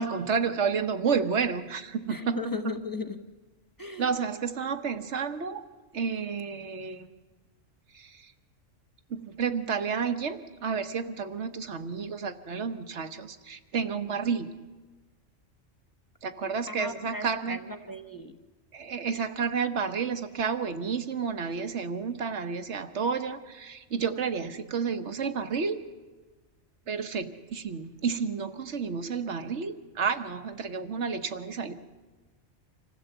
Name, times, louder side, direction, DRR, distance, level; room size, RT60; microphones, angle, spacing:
voice 1, 0.0-2.7 4.0-5.6 5.9-7.1 7.9-8.3 9.1-14.5 16.2-17.6 18.7-25.8 26.9-31.7, right 6 dB, 70° right, 10 dB, 1.4 m, -31 dB
voice 2, 2.1-3.3 3.8-4.1 16.7-18.4, left 3 dB, 15° left, 7 dB, 1.1 m, -37 dB
26.0 x 15.5 x 8.1 m, 1.2 s
omnidirectional pair, 1.3 m